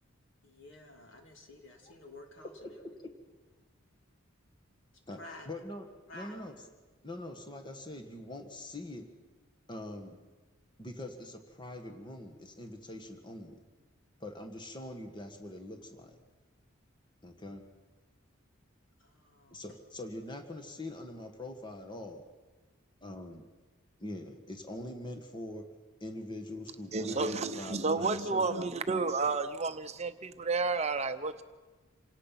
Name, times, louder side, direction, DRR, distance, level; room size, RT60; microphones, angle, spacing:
voice 1, 0.4-2.9 5.1-5.5 6.1-6.5 19.0-19.8, left 2 dB, 65° left, 2 dB, 3.3 m, -51 dB
voice 2, 5.5-5.9 6.1-6.5 7.0-9.1 9.7-10.2 10.8-13.6 14.2-16.2 17.2-17.7 19.5-22.2 23.0-23.5 24.0-25.7 26.0-28.7, left 1 dB, 25° left, 4 dB, 1.6 m, -43 dB
voice 3, 26.9-31.4, right 3 dB, 30° right, 9 dB, 0.8 m, -31 dB
27.5 x 18.0 x 5.8 m, 1.3 s
head